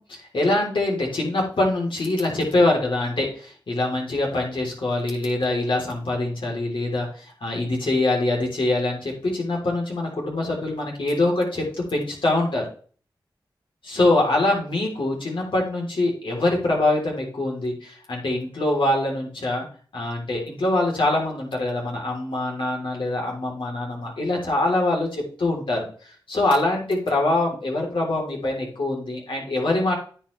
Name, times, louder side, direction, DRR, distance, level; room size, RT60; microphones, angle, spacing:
voice 1, 0.0-12.6 13.9-19.7 19.9-29.9, left 2 dB, 75° left, -1 dB, 3.7 m, -24 dB
9.9 x 8.2 x 3.3 m, 0.42 s
cardioid pair, 40°, 9 cm